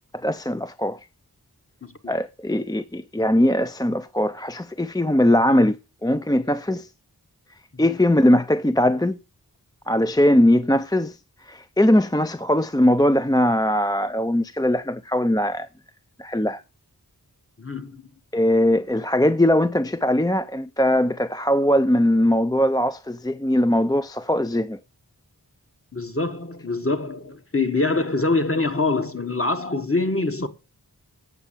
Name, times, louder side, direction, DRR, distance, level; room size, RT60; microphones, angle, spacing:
voice 1, 0.2-1.0 2.1-5.8 6.0-6.9 7.8-9.2 9.9-11.2 11.5-15.7 16.2-16.6 18.3-24.8, left 1 dB, 10° left, 0.5 m, -20 dB
voice 2, 1.8-2.1 7.7-7.9 17.6-18.0 25.9-30.5, left 3 dB, 35° left, 1.6 m, -25 dB
8.2 x 6.6 x 7.2 m
wide cardioid pair, 45°, 38 cm